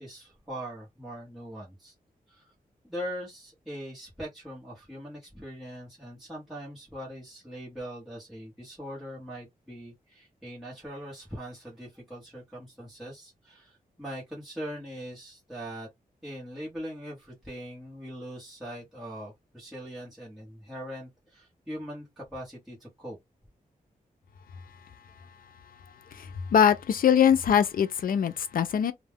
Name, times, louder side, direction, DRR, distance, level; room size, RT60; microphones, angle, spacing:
voice 1, 0.0-1.9 2.3-2.4 2.8-15.9 16.2-23.2, equal, ahead, 0.9 m, -41 dB
voice 2, 26.1-28.9, left 8 dB, 80° left, 0.4 m, -23 dB
2.2 x 2.1 x 3.4 m
wide cardioid pair, 155°, 15 cm